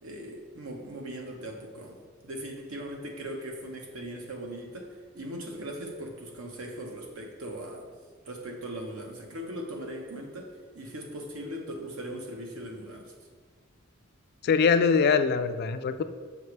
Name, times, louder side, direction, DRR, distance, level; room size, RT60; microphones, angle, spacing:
voice 1, 0.0-2.0 2.2-7.9 8.2-13.1, right 1 dB, 80° right, 1 dB, 1.0 m, -39 dB
voice 2, 14.4-16.0, left 5 dB, 50° left, 10 dB, 0.3 m, -23 dB
6.5 x 5.0 x 3.2 m, 1.5 s
head